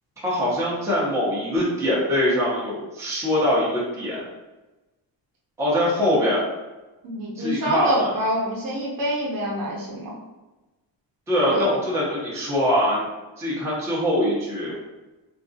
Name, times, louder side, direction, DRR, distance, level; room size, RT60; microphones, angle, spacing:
voice 1, 0.2-4.3 5.6-6.4 7.4-8.1 11.3-13.1 13.4-14.7, equal, 5° right, -7 dB, 0.6 m, -23 dB
voice 2, 7.0-10.1 11.4-11.7, equal, 50° right, -3 dB, 0.9 m, -26 dB
3.9 x 2.4 x 2.6 m, 1.1 s
cardioid pair, 180°, 44 cm